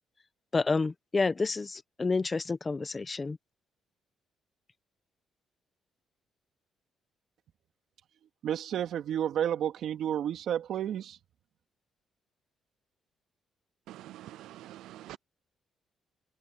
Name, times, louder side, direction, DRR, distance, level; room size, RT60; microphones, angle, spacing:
voice 1, 0.5-3.4, left 4 dB, 30° left, 1.0 m, -29 dB
voice 2, 8.4-11.2, right 10 dB, 70° right, 3.1 m, -31 dB
voice 3, 13.9-15.2, right 14 dB, 90° right, 0.4 m, -46 dB
open air
cardioid pair, 90°, 0 cm